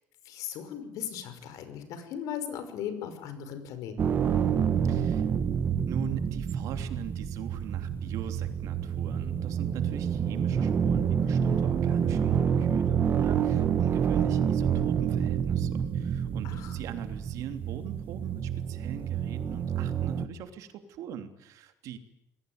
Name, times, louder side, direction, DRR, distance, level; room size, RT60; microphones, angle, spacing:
voice 1, 0.3-4.0 16.4-16.7, left 9 dB, 70° left, 10 dB, 5.4 m, -37 dB
sound 1, 4.0-20.3, right 8 dB, 30° right, 1.4 m, -28 dB
voice 2, 4.9-5.3 5.9-22.0, right 8 dB, 60° right, 8 dB, 3.1 m, -41 dB
28.0 x 21.5 x 9.5 m, 0.82 s
cardioid pair, 165°, 6 cm